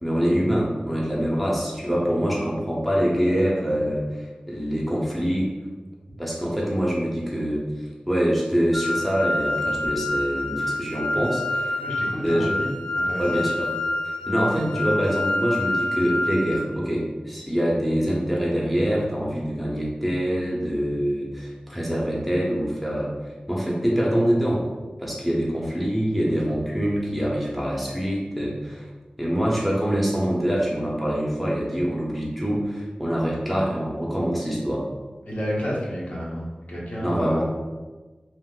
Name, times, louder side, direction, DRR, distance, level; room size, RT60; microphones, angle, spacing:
voice 1, 0.0-5.5 6.2-7.6 8.1-11.8 12.1-12.5 13.2-13.7 14.0-23.1 23.5-24.6 25.0-28.9 29.2-34.9 37.0-37.4, equal, ahead, -5 dB, 0.7 m, -25 dB
sound 1, 8.7-16.6, left 2 dB, 35° left, 0.3 m, -27 dB
voice 2, 11.8-13.4 35.2-37.4, equal, 55° left, -6 dB, 0.9 m, -30 dB
2.8 x 2.1 x 3.6 m, 1.3 s
wide cardioid pair, 50°, 3 cm